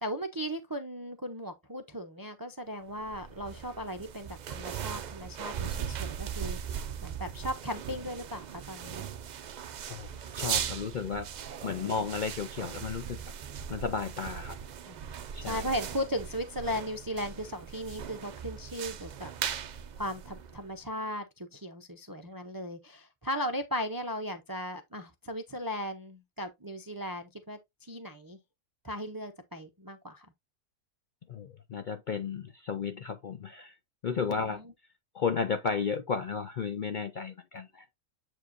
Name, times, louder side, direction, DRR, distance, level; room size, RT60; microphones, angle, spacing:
voice 1, 0.0-9.1 11.7-12.0 14.9-15.1 15.4-19.3 20.0-28.4 28.8-30.3 34.4-34.6, equal, 25° right, 0.4 m, -37 dB
sound 1, 2.9-20.8, right 8 dB, 90° right, 0.4 m, -39 dB
voice 2, 9.9-11.3 11.6-13.2 13.7-14.6 15.3-15.7 31.3-33.8 34.0-34.6 35.1-37.9, left 5 dB, 55° left, 0.5 m, -33 dB
7.8 x 4.8 x 2.6 m
omnidirectional pair, 1.4 m